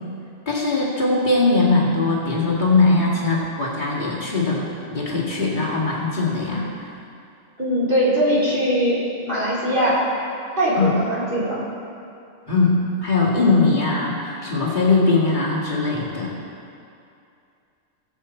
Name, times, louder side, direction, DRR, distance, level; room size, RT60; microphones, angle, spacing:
voice 1, 0.5-6.9 10.7-10.9 12.5-12.8 13.0-16.3, left 3 dB, 40° left, -6 dB, 2.3 m, -20 dB
voice 2, 7.6-9.0 9.2-10.0 10.6-11.6, equal, 45° right, -8 dB, 3.5 m, -21 dB
20.0 x 7.7 x 4.4 m, 2.6 s
omnidirectional pair, 1.2 m